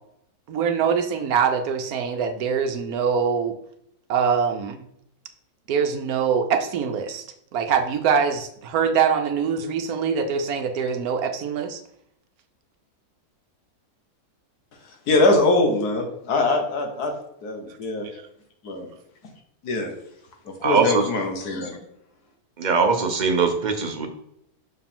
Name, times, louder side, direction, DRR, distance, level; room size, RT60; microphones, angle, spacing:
voice 1, 0.5-3.5 4.1-4.8 5.7-7.3 7.5-11.8, right 6 dB, 75° right, 7 dB, 1.2 m, -23 dB
voice 2, 15.1-17.1 17.4-18.1 18.6-18.9 19.6-19.9 20.6-21.8, left 2 dB, 80° left, 3 dB, 1.8 m, -22 dB
voice 3, 20.6-21.1 22.6-24.1, right 5 dB, 40° right, 4 dB, 0.8 m, -21 dB
6.4 x 4.7 x 3.6 m, 0.72 s
omnidirectional pair, 1.6 m